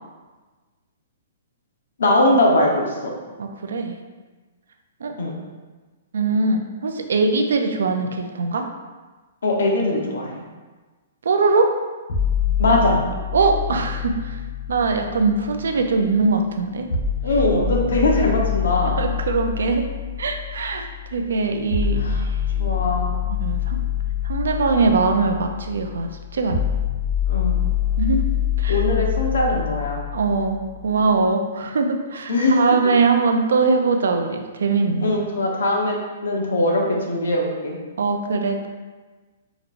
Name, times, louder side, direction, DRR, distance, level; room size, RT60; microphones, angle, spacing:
voice 1, 2.0-3.1 5.2-5.3 9.4-10.3 12.6-13.0 17.2-19.0 22.0-22.2 22.6-23.2 27.3-27.6 28.7-30.0 32.3-32.6 35.0-36.0 36.2-37.8, left 1 dB, 90° left, 0 dB, 0.9 m, -21 dB
voice 2, 3.4-4.0 5.0-5.1 6.1-8.6 11.2-11.7 13.3-14.3 14.7-16.9 19.0-19.8 20.2-20.9 21.1-22.0 23.4-23.8 24.2-26.6 28.0-28.2 28.6-28.8 30.1-35.2 38.0-38.7, right 4 dB, 85° right, 5 dB, 0.5 m, -21 dB
sound 1, 12.1-16.1 16.9-30.9, left 9 dB, 65° left, 1.5 m, -25 dB
5.1 x 3.0 x 2.5 m, 1.3 s
hypercardioid pair, 170°, 0 cm